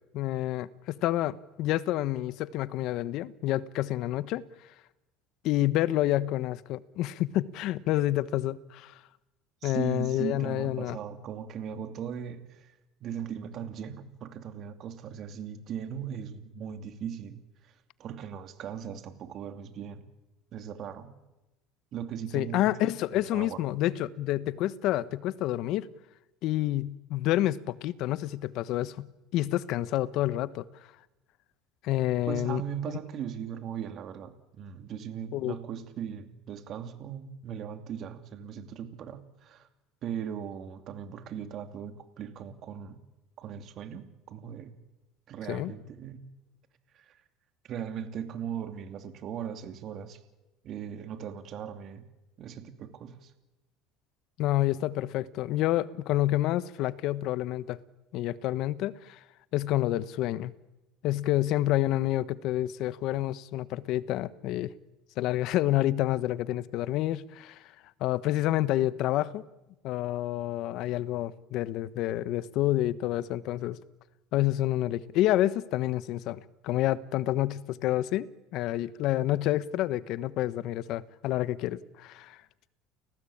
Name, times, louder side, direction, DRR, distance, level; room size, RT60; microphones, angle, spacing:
voice 1, 0.1-4.4 5.4-8.9 9.6-11.0 22.3-25.9 26.4-29.0 29.3-30.6 31.8-32.6 35.3-35.6 45.5-45.7 54.4-57.8 58.1-59.2 59.5-60.5 61.0-64.7 65.2-67.6 68.0-69.4 69.8-73.8 74.3-78.3 78.5-82.4, left 14 dB, 60° left, 17 dB, 1.1 m, -28 dB
voice 2, 9.6-12.7 13.0-17.7 18.0-20.1 20.5-21.2 21.9-22.7 23.1-23.6 32.3-39.7 40.0-43.0 43.4-44.7 45.3-46.2 46.9-47.2 47.6-50.2 50.6-52.1 52.4-53.3, right 8 dB, 45° right, 9 dB, 2.8 m, -38 dB
30.0 x 18.5 x 8.7 m, 1.0 s
cardioid pair, 130°, 0 cm